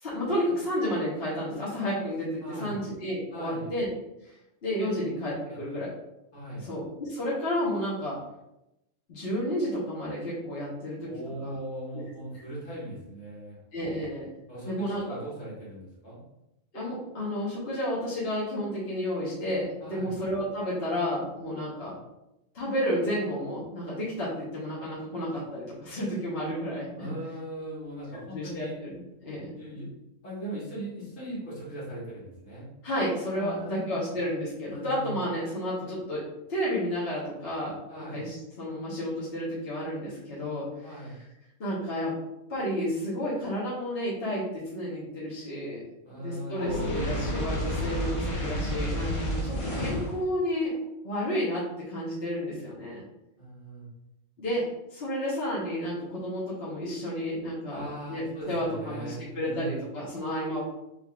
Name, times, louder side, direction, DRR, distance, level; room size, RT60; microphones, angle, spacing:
voice 1, 0.0-3.9 4.6-5.9 6.7-8.2 9.1-11.1 11.4-11.6 13.7-14.3 14.7-15.2 16.7-22.0 22.5-27.1 28.3-29.5 32.8-40.7 41.6-42.1 42.5-45.8 46.2-50.7 51.0-53.0 54.4-54.6 54.9-57.8 58.1-60.6, equal, 50° left, -8 dB, 1.4 m, -31 dB
voice 2, 2.4-2.8 3.3-3.7 4.8-4.9 6.3-6.7 11.0-14.0 14.5-16.2 19.8-20.2 27.0-28.7 29.6-29.9 30.2-32.7 33.3-34.2 34.7-35.2 37.9-38.2 40.8-41.2 46.0-47.2 53.4-53.9 57.7-59.8, right 1 dB, 70° left, -8 dB, 2.2 m, -39 dB
Fire, 46.5-50.2, equal, 30° left, 0.7 m, -30 dB
5.0 x 3.6 x 2.5 m, 0.89 s
omnidirectional pair, 1.3 m